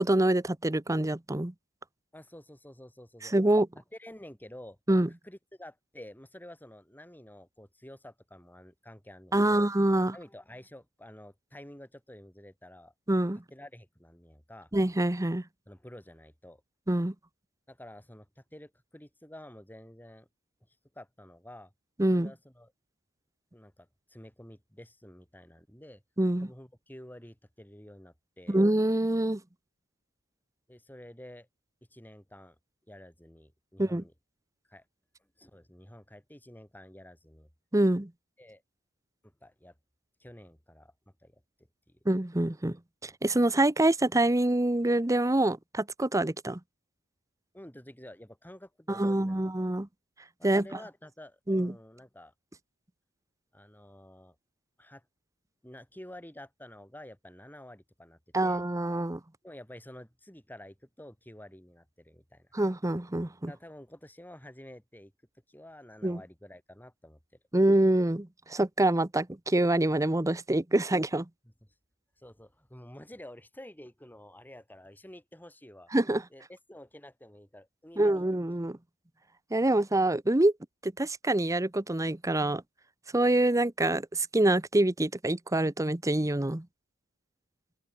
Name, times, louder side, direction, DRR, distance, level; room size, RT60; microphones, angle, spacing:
voice 1, 0.0-1.5 3.3-3.7 4.9-5.1 9.3-10.1 13.1-13.4 14.7-15.4 16.9-17.1 22.0-22.3 26.2-26.5 28.5-29.4 33.8-34.0 37.7-38.1 42.1-42.8 43.0-46.6 48.9-49.9 50.4-50.6 51.5-51.8 58.3-59.2 62.5-63.5 66.0-66.2 67.5-71.3 75.9-76.2 78.0-78.8 79.5-80.5 80.8-82.6 83.1-86.7, right 1 dB, 15° right, 0.9 m, -26 dB
voice 2, 2.1-3.5 4.0-4.8 5.2-9.7 10.1-12.9 13.5-14.7 15.7-16.6 17.7-20.3 20.9-21.7 22.1-22.7 23.5-26.0 26.4-28.6 30.7-31.5 31.9-32.6 32.9-34.1 34.7-34.8 35.4-37.5 38.4-38.6 39.2-39.7 40.2-41.4 41.9-42.0 47.5-49.5 49.8-49.9 50.4-52.3 53.5-54.4 54.8-55.0 55.6-58.6 59.4-62.5 63.5-65.1 65.5-67.2 71.4-71.5 72.2-75.9 76.3-78.2, left 1 dB, 10° left, 5.7 m, -50 dB
open air
head